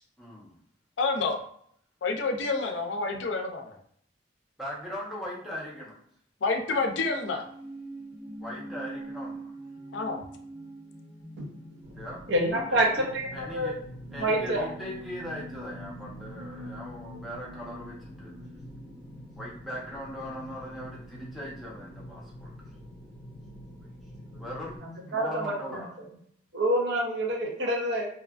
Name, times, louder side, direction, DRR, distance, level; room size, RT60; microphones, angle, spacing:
voice 1, 0.2-0.5 4.6-6.0 8.4-9.5 11.9-12.2 12.7-13.1 13.3-13.7 14.1-18.3 19.4-22.5 24.4-24.8 25.1-26.2, equal, ahead, -6 dB, 0.8 m, -39 dB
voice 2, 1.0-1.4 2.0-3.8 6.4-7.5 9.9-10.2, left 3 dB, 80° left, 4 dB, 0.4 m, -28 dB
sound 1, 6.7-22.0, right 1 dB, 30° left, 0.7 m, -45 dB
sound 2, 11.8-24.8, equal, 20° right, 1.1 m, -46 dB
voice 3, 12.3-13.7 14.2-14.7 24.4-24.5 24.8-25.8 26.5-28.1, right 1 dB, 70° right, 0 dB, 0.7 m, -27 dB
2.8 x 2.3 x 2.3 m, 0.66 s
head